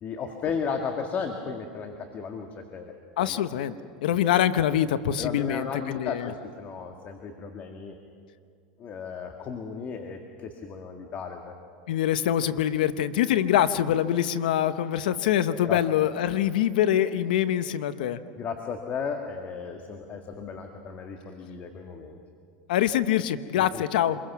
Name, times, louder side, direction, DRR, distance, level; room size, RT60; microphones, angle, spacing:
voice 1, 0.0-3.4 4.1-4.2 5.2-8.0 8.8-11.6 15.6-15.8 18.4-22.2 23.6-23.8, left 6 dB, 40° left, 3 dB, 1.9 m, -35 dB
voice 2, 3.2-3.7 4.0-6.3 11.9-18.2 22.7-24.2, left 11 dB, 80° left, 13 dB, 1.0 m, -24 dB
27.0 x 22.0 x 6.1 m, 2.2 s
supercardioid pair, 115°, 5 cm